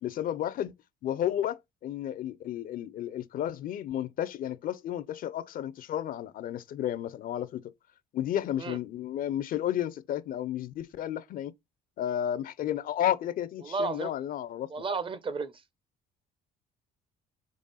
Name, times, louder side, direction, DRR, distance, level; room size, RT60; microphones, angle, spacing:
voice 1, 0.0-0.7 1.0-7.6 8.1-11.5 12.0-14.8, left 11 dB, 55° left, 0.5 m, -32 dB
voice 2, 13.6-14.1 14.7-15.5, right 4 dB, 30° right, 0.6 m, -32 dB
3.7 x 3.4 x 3.9 m
cardioid pair, 110°, 17 cm